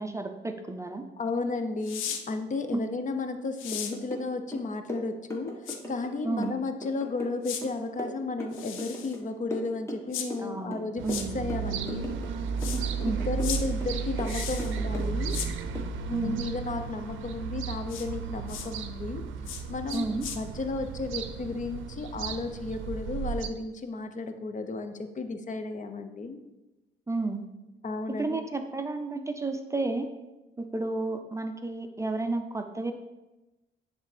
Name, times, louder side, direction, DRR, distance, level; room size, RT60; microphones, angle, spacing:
voice 1, 0.0-1.0 2.7-2.8 6.2-6.5 10.4-11.4 12.7-13.2 16.1-16.4 19.9-20.3 27.1-27.5 28.2-30.1 30.6-32.9, right 3 dB, 15° right, 6 dB, 0.5 m, -32 dB
voice 2, 1.2-11.0 11.3-12.1 13.0-15.4 16.1-19.2 19.7-20.1 20.4-26.4 27.8-28.4, left 3 dB, 40° left, 8 dB, 0.6 m, -33 dB
sound 1, 1.8-2.2 3.6-3.9 5.7-5.8 7.4-7.6 8.5-9.2 10.1-10.3 11.1-11.3 12.6-12.8 13.4-13.6 14.3-14.7 15.3-15.5 17.9-18.1 18.5-18.7 19.5-19.6 19.9-20.4, left 8 dB, 85° left, 0.6 m, -36 dB
sound 2, 3.7-4.3 4.5-6.1 6.4-9.2 9.5-10.5 10.7-12.3 12.6-13.5 13.8-15.4 15.7-15.9, equal, 15° left, 1.2 m, -39 dB
sound 3, 11.0-23.5, right 6 dB, 80° right, 0.5 m, -34 dB
10.0 x 3.4 x 3.3 m, 1.0 s
cardioid pair, 90°, 20 cm